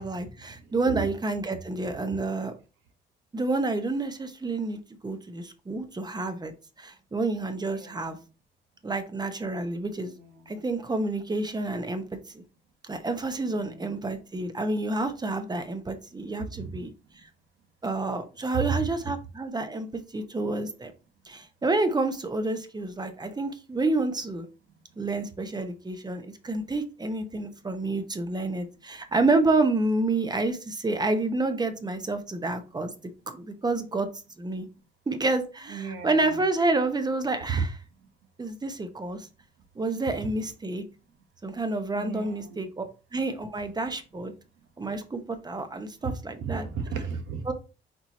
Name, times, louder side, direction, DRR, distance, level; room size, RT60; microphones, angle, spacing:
voice 1, 0.0-2.5 3.3-6.5 6.8-8.2 8.8-10.1 10.5-12.0 12.3-12.4 12.9-16.9 17.8-19.9 20.1-20.9 21.3-24.5 25.0-32.9 33.3-34.1 34.4-34.7 35.1-37.6 38.4-39.3 39.8-40.8 41.4-42.9 43.1-44.3 44.8-46.7 47.5-47.6, right 2 dB, 20° right, 0.8 m, -29 dB
voice 2, 7.7-8.0 10.1-10.6 13.4-13.9 16.4-16.8 18.5-19.1 35.6-36.4 37.5-37.6 41.9-42.6 46.0-46.1 46.4-47.5, right 6 dB, 80° right, 1.1 m, -34 dB
4.4 x 3.0 x 4.1 m
cardioid pair, 90°, 20 cm